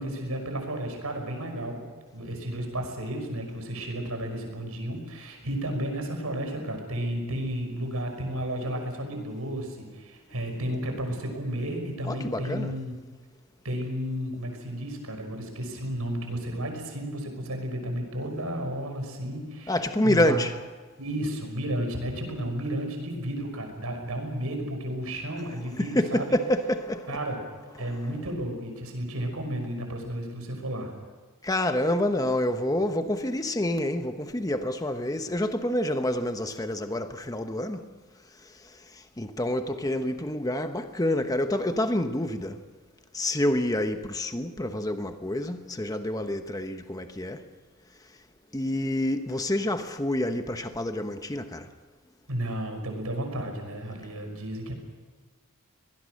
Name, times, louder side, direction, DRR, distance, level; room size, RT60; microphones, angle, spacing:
voice 1, 0.0-1.8 2.1-13.0 13.6-20.4 21.0-26.4 27.1-27.4 27.8-30.9 52.3-54.7, right 1 dB, 90° right, 5.8 m, -32 dB
voice 2, 12.0-12.7 19.7-20.6 25.8-27.3 27.7-28.0 31.4-37.9 38.9-42.6 43.1-47.4 48.5-51.7, left 1 dB, 15° left, 1.0 m, -28 dB
24.0 x 19.5 x 6.5 m
head